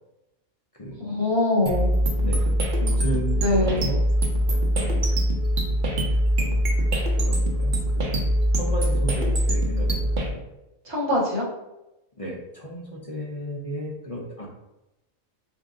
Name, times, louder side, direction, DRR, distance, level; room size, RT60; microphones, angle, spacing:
voice 1, 1.0-1.9 3.4-3.8 10.8-11.5, left 2 dB, 20° right, -7 dB, 1.4 m, -23 dB
sound 1, 1.7-10.3, equal, 45° right, 0.7 m, -23 dB
voice 2, 2.7-4.0 4.5-5.3 6.1-8.1 8.6-10.0 10.3-10.4 12.2-14.5, equal, 35° left, -3 dB, 0.6 m, -34 dB
6.9 x 2.6 x 2.6 m, 0.94 s
omnidirectional pair, 1.4 m